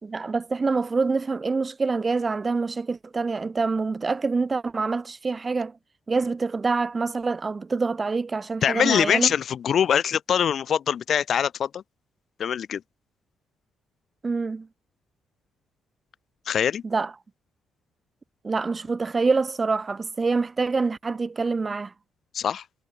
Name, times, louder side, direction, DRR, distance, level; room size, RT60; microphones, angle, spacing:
voice 1, 0.0-5.7 6.1-9.3 14.2-14.7 16.8-17.1 18.4-21.9, right 4 dB, 30° right, 2.8 m, -26 dB
voice 2, 8.6-11.8 12.4-12.8 16.5-16.8 22.3-22.6, left 8 dB, 60° left, 1.3 m, -23 dB
cardioid pair, 90°, 0 cm